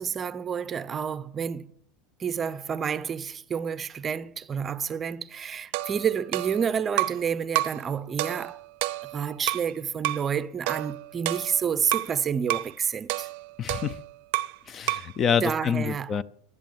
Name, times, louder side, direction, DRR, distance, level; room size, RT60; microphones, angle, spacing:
voice 1, 0.0-1.7 2.2-8.6 9.1-13.3 15.4-16.1, right 7 dB, 25° right, 0.6 m, -29 dB
sound 1, 5.7-7.3 7.5-7.8 8.2-9.7 10.0-10.3 10.7-12.1 12.5-12.7 13.1-14.6 14.9-15.2, right 20 dB, 65° right, 0.6 m, -30 dB
voice 2, 13.6-14.0 14.7-16.2, left 7 dB, 30° left, 0.5 m, -27 dB
11.0 x 10.5 x 7.3 m
supercardioid pair, 135°, 0 cm